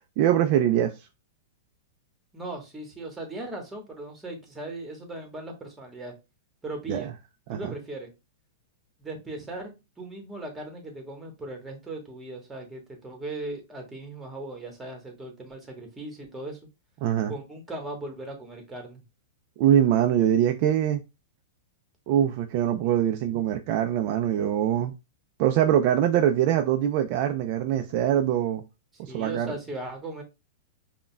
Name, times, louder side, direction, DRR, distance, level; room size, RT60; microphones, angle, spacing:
voice 1, 0.2-0.9 6.9-7.1 7.5-7.7 17.0-17.3 19.6-21.0 22.1-24.9 25.4-28.6 29.0-29.5, right 10 dB, 50° right, 0.4 m, -23 dB
voice 2, 2.3-6.1 6.6-7.1 7.5-8.1 9.0-16.6 17.3-19.0 29.1-30.2, right 2 dB, 10° right, 1.2 m, -38 dB
5.2 x 2.2 x 2.2 m
hypercardioid pair, 110°, 0 cm